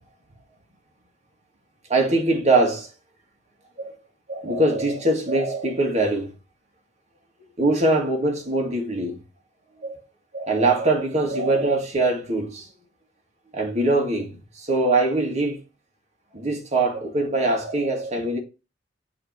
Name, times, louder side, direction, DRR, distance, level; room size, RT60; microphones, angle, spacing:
voice 1, 1.9-2.9 3.8-4.0 4.3-6.3 7.6-9.2 9.8-10.0 10.3-12.7 13.5-15.6 16.3-18.4, right 2 dB, 40° right, 1.9 m, -22 dB
8.2 x 3.1 x 4.7 m
head